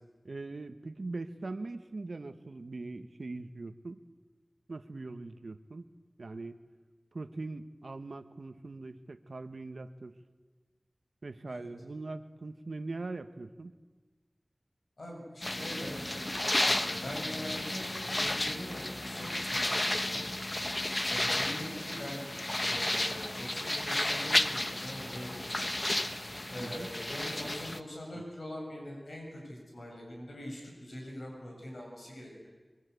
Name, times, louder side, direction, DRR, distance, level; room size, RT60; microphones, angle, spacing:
voice 1, 0.2-4.0 4.7-5.9 6.2-6.6 7.1-10.1 11.2-13.7 26.6-26.9 28.1-28.2, right 3 dB, 85° right, 9 dB, 1.1 m, -41 dB
voice 2, 15.0-16.0 16.6-20.2 21.1-22.3 22.6-25.8 26.5-32.5, left 1 dB, 85° left, -1 dB, 7.3 m, -43 dB
sound 1, 15.4-27.8, left 1 dB, 35° left, 1.2 m, -32 dB
25.0 x 23.5 x 8.2 m, 1.3 s
wide cardioid pair, 45°, 0 cm